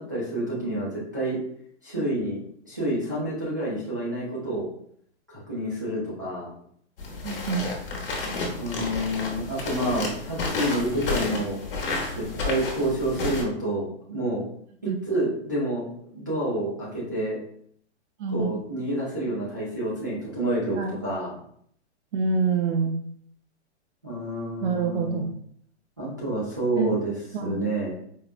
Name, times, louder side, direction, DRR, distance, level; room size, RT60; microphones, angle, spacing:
voice 1, 0.1-1.4 1.8-2.4 2.6-4.7 5.3-6.5 8.5-11.6 12.2-14.4 14.8-15.9 16.1-17.4 18.3-21.4 24.0-25.3 26.0-28.0, right 1 dB, 20° right, -9 dB, 0.3 m, -28 dB
sound 1, 7.0-13.4, left 3 dB, 50° left, 0.9 m, -31 dB
voice 2, 7.2-7.7 14.9-15.0 18.2-18.6 20.8-21.0 22.1-23.0 24.6-25.3 26.7-26.9 27.3-27.7, right 5 dB, 75° right, 2 dB, 0.5 m, -26 dB
4.5 x 2.0 x 2.4 m, 0.64 s
hypercardioid pair, 165°, 35 cm